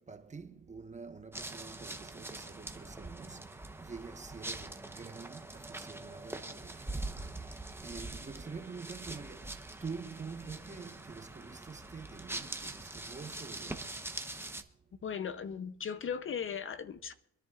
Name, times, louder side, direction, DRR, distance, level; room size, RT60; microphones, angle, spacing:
voice 1, 0.1-3.5 3.8-7.1 7.8-9.5 9.8-13.9, right 5 dB, 25° right, 1.1 m, -46 dB
sound 1, 1.3-14.6, right 2 dB, 10° right, 0.9 m, -43 dB
voice 2, 15.0-17.1, left 7 dB, 45° left, 0.7 m, -37 dB
26.5 x 10.5 x 2.4 m
cardioid pair, 90°, 30 cm